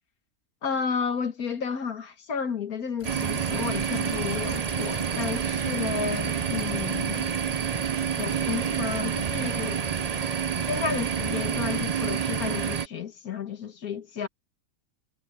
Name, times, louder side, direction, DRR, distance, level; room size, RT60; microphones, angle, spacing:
voice 1, 0.6-7.3 8.2-9.8 10.7-14.3, left 6 dB, 90° left, 2.1 m, -32 dB
sound 1, 3.0-12.7, left 6 dB, 60° left, 1.7 m, -45 dB
sound 2, 3.0-12.9, right 7 dB, 50° right, 0.5 m, -28 dB
omnidirectional pair, 1.5 m